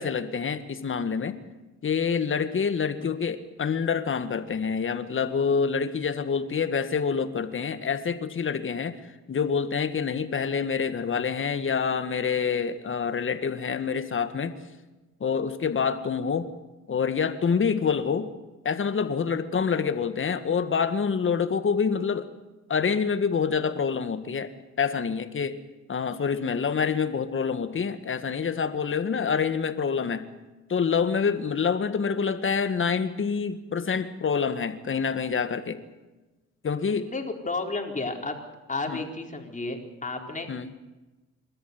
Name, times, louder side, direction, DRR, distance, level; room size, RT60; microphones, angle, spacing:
voice 1, 0.0-1.4 1.8-9.0 9.3-14.6 15.2-16.5 16.9-18.3 18.6-22.3 22.7-24.5 24.8-25.6 25.9-30.2 30.7-35.8 36.6-37.1 38.9-39.0 40.5-40.7, left 6 dB, 40° left, 10 dB, 1.9 m, -27 dB
voice 2, 37.1-38.4 38.7-40.5, left 3 dB, 25° left, 3 dB, 4.3 m, -32 dB
27.5 x 13.5 x 9.6 m, 1.1 s
cardioid pair, 90°, 30 cm